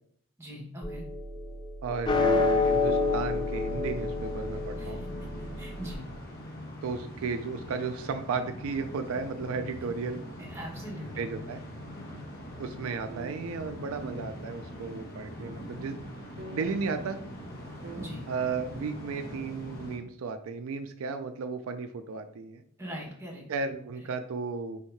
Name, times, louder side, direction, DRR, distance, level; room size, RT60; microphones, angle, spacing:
voice 1, 0.4-1.0 4.8-5.0 5.6-6.1 10.4-11.3 18.0-18.2 22.8-23.4, equal, 10° right, -1 dB, 1.0 m, -41 dB
sound 1, 0.8-5.9, left 3 dB, 20° left, 0.4 m, -29 dB
voice 2, 1.8-5.0 6.8-10.3 11.2-11.6 12.6-16.0 16.5-17.2 18.3-22.6 23.5-24.8, right 4 dB, 75° right, 8 dB, 0.4 m, -34 dB
sound 2, 2.1-20.0, equal, 45° left, 0.9 m, -43 dB
sound 3, 13.1-13.4 13.6-13.7 14.0-14.2 14.9-15.0 15.4-15.7 16.0-16.1 16.4-16.6 17.2-17.3 17.8-18.1 18.7-18.8, right 1 dB, 40° right, 0.7 m, -43 dB
3.5 x 2.7 x 4.5 m, 0.66 s
head